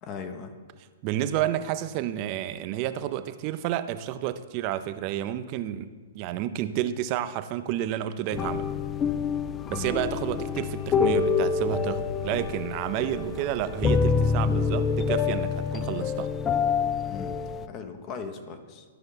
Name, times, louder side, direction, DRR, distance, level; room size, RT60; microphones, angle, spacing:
voice 1, 0.0-0.5 9.7-10.0 17.1-17.4 17.7-18.8, left 5 dB, 35° left, 7 dB, 0.9 m, -38 dB
voice 2, 1.0-8.7 9.7-16.3, right 11 dB, 40° right, 11 dB, 0.5 m, -30 dB
sound 1, 8.3-17.7, left 5 dB, 20° left, 0.4 m, -27 dB
13.0 x 5.5 x 3.9 m, 1.5 s
hypercardioid pair, 130°, 0 cm